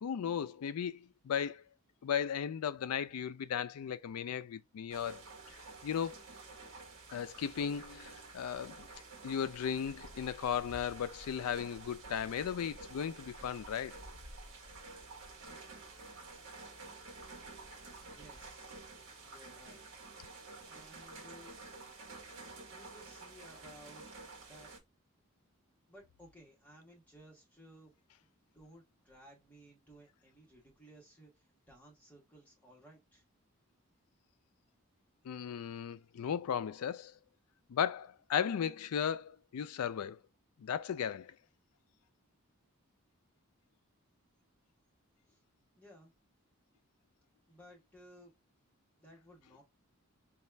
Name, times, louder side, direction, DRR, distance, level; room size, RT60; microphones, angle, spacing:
voice 1, 0.0-1.6 2.0-5.2 5.8-6.2 7.1-8.9 9.2-14.0 35.2-37.1 37.7-40.2 40.6-41.4, left 8 dB, 85° left, 0.4 m, -36 dB
sound 1, 4.9-24.8, right 3 dB, 60° right, 1.1 m, -50 dB
voice 2, 18.1-18.9 19.2-19.8 20.7-21.6 22.7-24.7 25.9-33.2 45.2-45.4 45.7-46.1 47.5-48.3 49.0-49.6, equal, 5° left, 1.3 m, -58 dB
4.2 x 2.3 x 3.2 m
head